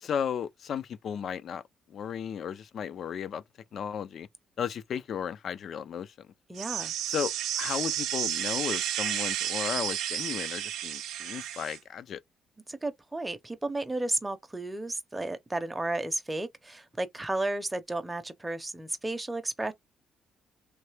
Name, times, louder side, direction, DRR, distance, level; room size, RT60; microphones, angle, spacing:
voice 1, 0.0-1.6 1.9-3.4 3.7-4.3 4.6-6.1 7.1-12.2, left 8 dB, 60° left, 0.4 m, -34 dB
voice 2, 6.5-6.9 12.7-19.7, right 2 dB, 15° right, 0.6 m, -33 dB
sound 1, 6.6-11.8, right 11 dB, 90° right, 0.5 m, -32 dB
3.2 x 2.7 x 3.3 m
cardioid pair, 90°, 0 cm